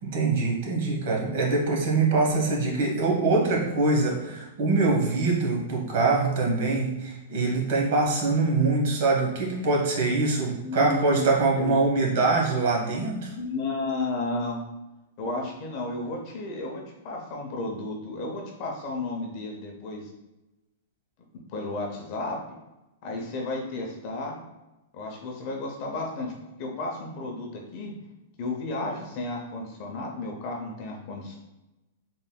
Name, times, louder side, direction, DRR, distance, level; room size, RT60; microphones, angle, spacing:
voice 1, 0.0-13.3, right 3 dB, 50° right, -1 dB, 1.0 m, -24 dB
voice 2, 10.6-11.2 11.5-11.7 13.3-14.6 15.2-20.1 21.5-22.4 23.0-24.4 24.9-26.3 26.6-27.9 28.4-31.4, left 2 dB, 35° left, 0 dB, 0.6 m, -33 dB
3.9 x 3.8 x 2.2 m, 1.0 s
supercardioid pair, 170°, 0 cm